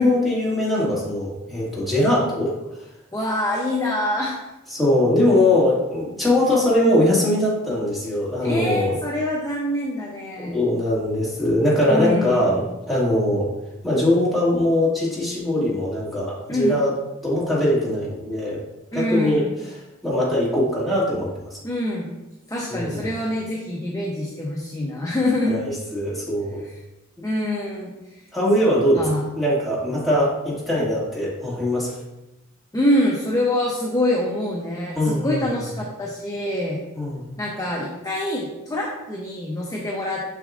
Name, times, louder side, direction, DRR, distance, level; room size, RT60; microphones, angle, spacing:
voice 1, 0.0-2.5 4.7-9.0 10.4-13.5 13.8-16.9 17.2-18.6 18.9-19.4 20.0-21.4 22.7-23.0 25.5-26.6 28.3-29.0 29.4-31.9 35.0-35.6 37.0-37.3, left 1 dB, ahead, -8 dB, 2.1 m, -21 dB
voice 2, 3.1-4.4 8.4-10.6 11.9-12.6 16.5-16.8 18.9-19.6 21.6-22.1 22.5-25.6 26.6-26.7 27.2-28.2 28.9-29.3 32.7-36.8 37.4-40.2, left 1 dB, 15° left, -2 dB, 0.7 m, -25 dB
6.9 x 6.2 x 2.5 m, 0.98 s
head